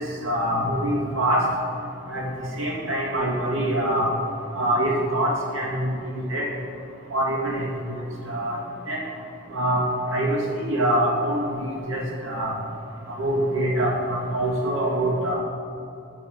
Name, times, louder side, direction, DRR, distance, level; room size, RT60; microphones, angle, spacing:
voice 1, 0.0-1.4 2.1-4.1 4.5-5.9 6.3-6.5 7.1-8.0 8.3-8.6 8.9-9.0 9.5-12.6 13.2-15.4, right 1 dB, 70° right, -4 dB, 2.3 m, -24 dB
14.0 x 4.7 x 6.7 m, 2.7 s
head